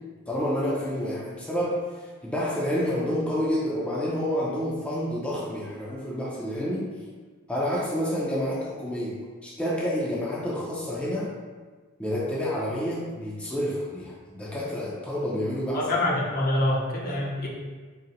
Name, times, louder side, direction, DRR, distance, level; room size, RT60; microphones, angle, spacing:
voice 1, 0.3-6.9 7.5-11.3 12.0-15.8, equal, 5° left, -6 dB, 0.5 m, -29 dB
voice 2, 15.7-17.5, left 1 dB, 45° left, -3 dB, 0.7 m, -25 dB
4.0 x 2.0 x 3.8 m, 1.4 s
head